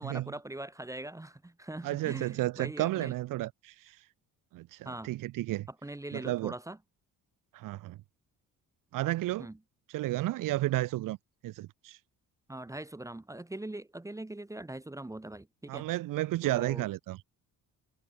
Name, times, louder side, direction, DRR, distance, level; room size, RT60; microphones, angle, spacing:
voice 1, 0.0-3.1 4.8-5.1 5.8-6.8 9.4-9.6 12.5-15.9 16.4-16.9, right 1 dB, 10° right, 1.3 m, -42 dB
voice 2, 1.8-4.0 4.5-5.7 6.1-6.5 7.5-8.0 8.9-9.5 9.9-11.2 11.4-12.0 15.7-17.2, right 17 dB, 65° right, 0.6 m, -32 dB
cardioid pair, 120°, 35 cm